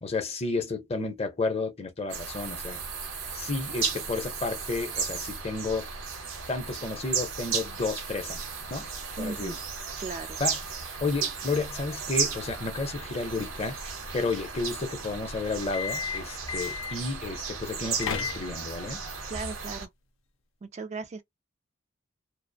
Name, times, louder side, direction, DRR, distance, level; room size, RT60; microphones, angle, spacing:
voice 1, 0.0-2.8 3.3-5.9 6.5-8.4 8.7-8.9 9.2-9.5 10.4-10.6 11.0-13.8 14.1-19.0, left 3 dB, 30° left, 0.6 m, -31 dB
sound 1, 2.1-19.9, right 5 dB, 85° right, 0.8 m, -35 dB
voice 2, 9.2-9.6 10.0-10.4 19.3-19.9 20.6-21.2, right 4 dB, 35° right, 0.3 m, -37 dB
sound 2, 15.6-17.1 17.7-18.8, left 7 dB, 80° left, 0.5 m, -34 dB
2.4 x 2.0 x 2.6 m
head